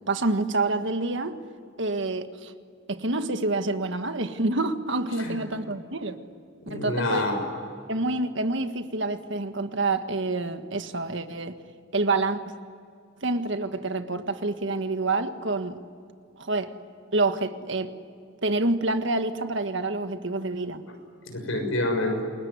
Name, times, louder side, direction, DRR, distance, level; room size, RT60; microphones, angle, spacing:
voice 1, 0.1-1.3 1.8-2.5 2.9-6.2 6.7-7.2 7.9-11.5 11.9-12.5 13.2-15.8 16.4-16.7 17.1-17.9 18.4-20.8, right 2 dB, 65° right, 8 dB, 1.6 m, -27 dB
voice 2, 6.7-7.4 21.3-22.2, left 1 dB, 80° left, 4 dB, 6.4 m, -27 dB
28.5 x 21.5 x 9.7 m, 2.4 s
head